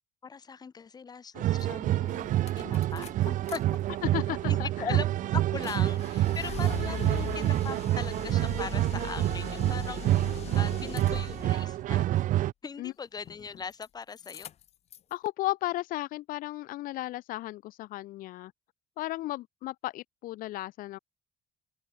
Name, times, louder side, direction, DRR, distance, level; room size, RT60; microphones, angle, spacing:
voice 1, 0.2-3.6 4.5-12.0 12.6-14.5, left 5 dB, 30° left, 2.4 m, -40 dB
sound 1, 1.4-12.5, right 14 dB, 70° right, 0.7 m, -28 dB
sound 2, 1.6-1.7 2.0-3.6 3.9-11.7 13.2-13.9 14.1-15.1, left 10 dB, 50° left, 0.9 m, -42 dB
voice 2, 4.0-5.0 9.6-9.8 10.7-10.8 12.8-12.9 15.1-18.5 19.0-21.0, left 16 dB, 90° left, 0.7 m, -35 dB
open air
cardioid pair, 150°, 14 cm